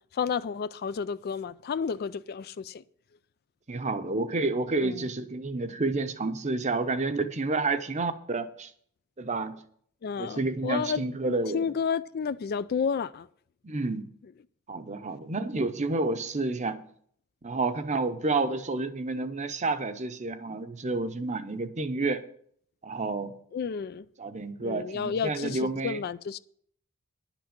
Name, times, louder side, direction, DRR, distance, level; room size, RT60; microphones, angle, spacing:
voice 1, 0.1-2.8 4.8-5.1 10.0-11.0 11.5-13.3 23.5-24.1 24.6-26.4, left 6 dB, 45° left, 0.3 m, -31 dB
voice 2, 3.7-8.7 9.2-9.6 10.2-11.7 13.6-14.1 14.7-16.8 17.4-22.2 22.8-23.3 24.2-26.0, right 3 dB, 35° right, 0.8 m, -30 dB
11.0 x 6.0 x 7.2 m
head